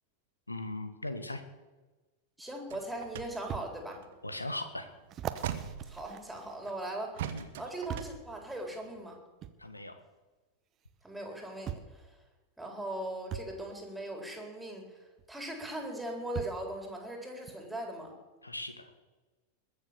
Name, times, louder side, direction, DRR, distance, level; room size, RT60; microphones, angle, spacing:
voice 1, 0.5-1.4 4.2-4.9 7.3-7.5 9.6-10.0 18.4-18.9, left 2 dB, 85° left, 9 dB, 1.5 m, -38 dB
voice 2, 2.4-4.0 5.9-9.2 11.0-12.1 12.6-14.9 15.3-18.1, right 1 dB, 5° right, 1 dB, 4.0 m, -39 dB
sound 1, 2.4-2.5 3.5-3.7 4.3-4.4 5.1-7.0 7.9-8.2 9.4-9.6 10.8-10.9 11.7-12.0 13.3-13.5 15.2-15.3 16.3-16.7 17.5-17.6, right 10 dB, 30° right, 0.9 m, -40 dB
sound 2, 2.7-6.5 7.2-9.2, right 10 dB, 55° right, 1.2 m, -42 dB
21.5 x 7.3 x 7.0 m, 1.2 s
figure-of-eight pair, 90°, 0 cm